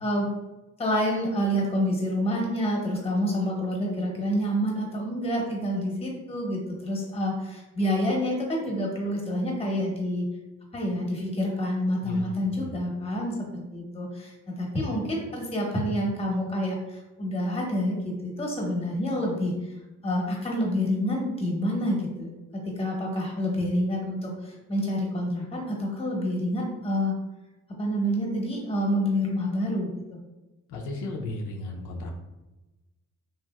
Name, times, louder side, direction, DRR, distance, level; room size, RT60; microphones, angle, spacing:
voice 1, 0.8-10.3 10.7-19.8 20.0-27.2 27.8-29.9, equal, 20° left, -1 dB, 0.9 m, -28 dB
voice 2, 12.0-12.7 30.7-32.1, left 2 dB, 85° left, 1 dB, 0.5 m, -35 dB
2.9 x 2.5 x 2.2 m, 1.0 s
cardioid pair, 90°, 30 cm